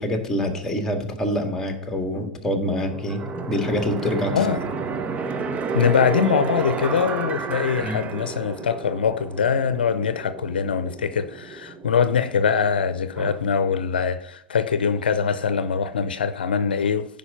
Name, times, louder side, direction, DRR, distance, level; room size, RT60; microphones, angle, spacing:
voice 1, 0.0-4.3 7.8-8.0, left 1 dB, 10° left, 3 dB, 1.8 m, -26 dB
sound 1, 2.7-13.4, right 5 dB, 25° right, 0.8 m, -31 dB
voice 2, 4.3-4.6 5.7-17.1, left 6 dB, 80° left, 12 dB, 0.6 m, -23 dB
9.9 x 5.3 x 5.5 m, 0.74 s
hypercardioid pair, 95°, 5 cm